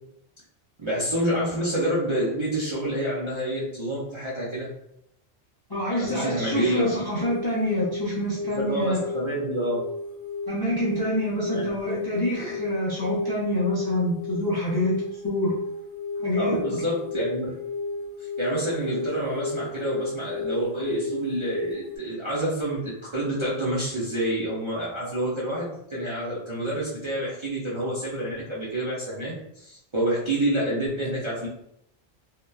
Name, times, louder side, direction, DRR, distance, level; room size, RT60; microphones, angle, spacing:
voice 1, 0.8-4.7 6.0-6.9 8.6-9.8 11.5-11.6 16.4-17.5 18.2-31.5, right 1 dB, 40° right, -8 dB, 0.5 m, -28 dB
voice 2, 5.7-9.0 10.5-14.9 15.2-15.5 16.2-16.6, equal, 30° left, -7 dB, 0.4 m, -26 dB
sound 1, 6.0-22.0, left 3 dB, 55° left, 0.8 m, -33 dB
2.8 x 2.1 x 2.2 m, 0.75 s
omnidirectional pair, 1.1 m